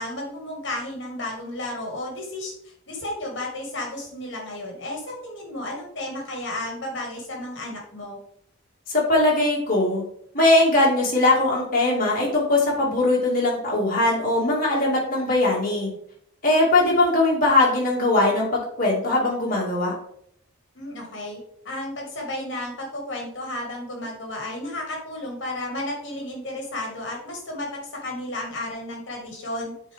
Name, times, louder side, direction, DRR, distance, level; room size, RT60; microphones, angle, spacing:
voice 1, 0.0-8.2 20.7-21.4 21.6-29.7, left 1 dB, 60° left, 0 dB, 2.2 m, -33 dB
voice 2, 8.9-10.0 10.3-15.9 16.4-20.0, left 2 dB, 45° left, -4 dB, 2.4 m, -20 dB
8.4 x 4.1 x 3.7 m, 0.68 s
head